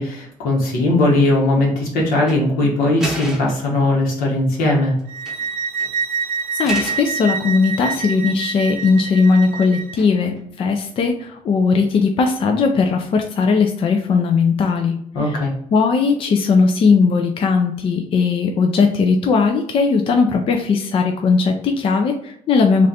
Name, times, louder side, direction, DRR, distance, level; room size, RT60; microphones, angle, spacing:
voice 1, 0.0-4.9 15.1-15.5, left 2 dB, 80° left, -2 dB, 1.4 m, -18 dB
sound 1, 2.1-2.4 3.0-3.7 5.0-5.5 5.8-5.9 6.6-7.1 7.7-8.3 10.0-10.4, right 1 dB, 5° right, 0.9 m, -32 dB
sound 2, 5.1-10.0, right 6 dB, 80° right, 0.6 m, -26 dB
voice 2, 6.5-15.4 15.7-22.9, left 4 dB, 40° left, 4 dB, 0.4 m, -18 dB
3.3 x 2.5 x 4.0 m, 0.71 s
cardioid pair, 155°, 15 cm